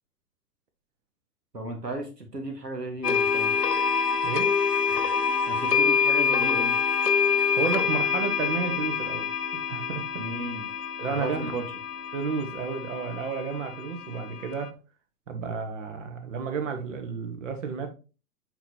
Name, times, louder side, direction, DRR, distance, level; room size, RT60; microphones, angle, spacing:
voice 1, 1.5-3.6 5.5-6.8 10.2-10.7 11.1-11.7, right 2 dB, 85° right, 4 dB, 1.8 m, -34 dB
sound 1, 3.0-14.7, left 6 dB, 85° left, 0.7 m, -26 dB
voice 2, 7.6-9.3 9.7-10.0 11.0-11.5 12.1-14.7 15.3-17.9, right 5 dB, 50° right, 6 dB, 1.6 m, -31 dB
7.5 x 4.6 x 2.9 m, 0.33 s
figure-of-eight pair, 115°, 47 cm